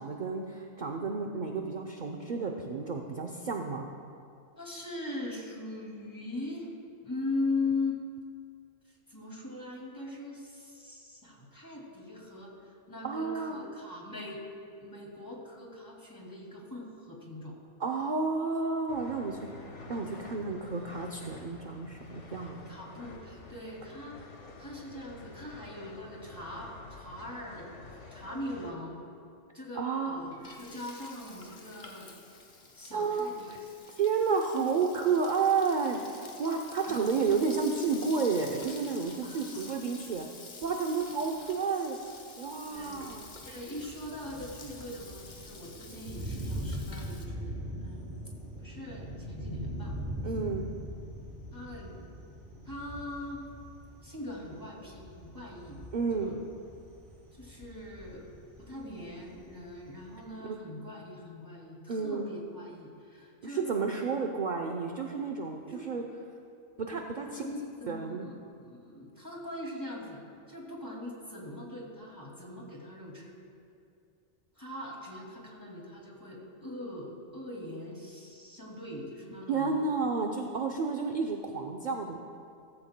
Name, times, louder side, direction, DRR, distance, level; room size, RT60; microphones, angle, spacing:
voice 1, 0.0-3.9 13.0-13.6 17.8-19.5 19.9-22.6 29.8-30.2 32.9-33.6 34.0-40.3 40.6-42.0 42.4-43.3 50.2-50.7 55.9-56.3 60.4-60.6 61.9-62.3 63.4-66.0 66.8-67.4 67.9-68.3 79.5-82.2, right 5 dB, 45° right, 2 dB, 0.7 m, -31 dB
voice 2, 4.6-6.7 7.0-8.0 8.9-14.4 14.8-17.6 22.7-24.3 24.6-27.7 28.1-29.0 29.5-32.1 32.7-33.5 34.5-34.7 36.8-37.0 39.2-39.8 42.7-43.0 43.4-47.5 47.8-48.1 48.6-50.0 51.5-52.0 52.6-53.4 54.0-55.8 56.1-56.4 57.3-58.2 58.6-63.6 65.7-65.9 67.3-70.2 70.5-73.3 74.6-79.7, left 2 dB, 15° left, -3 dB, 2.3 m, -40 dB
sound 1, 18.9-28.7, left 3 dB, 80° left, 1.5 m, -49 dB
Frying (food), 30.0-47.2, left 3 dB, 45° left, 1.2 m, -49 dB
Thunder, 42.7-60.3, equal, 80° right, 3.7 m, -42 dB
17.0 x 14.5 x 2.2 m, 2.4 s
omnidirectional pair, 1.2 m